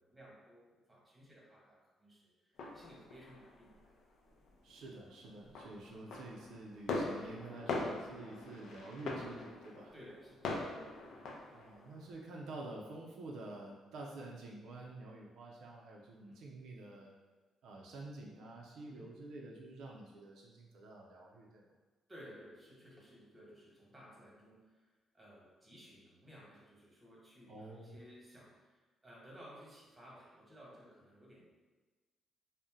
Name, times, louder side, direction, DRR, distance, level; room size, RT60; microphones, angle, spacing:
voice 1, 0.0-3.9 5.5-5.6 8.1-8.3 9.9-10.6 11.1-11.4 16.3-16.5 18.9-19.1 22.1-24.8 25.1-28.7 29.0-31.5, equal, 15° right, -5 dB, 1.1 m, -57 dB
sound 1, 2.6-3.9 4.3-4.8 5.1-12.2, left 2 dB, 75° left, 0.4 m, -42 dB
voice 2, 4.6-9.9 11.5-17.1 17.6-21.7 27.5-27.9, right 2 dB, 80° right, -2 dB, 0.4 m, -49 dB
2.6 x 2.0 x 3.5 m, 1.3 s
cardioid pair, 90°, 0 cm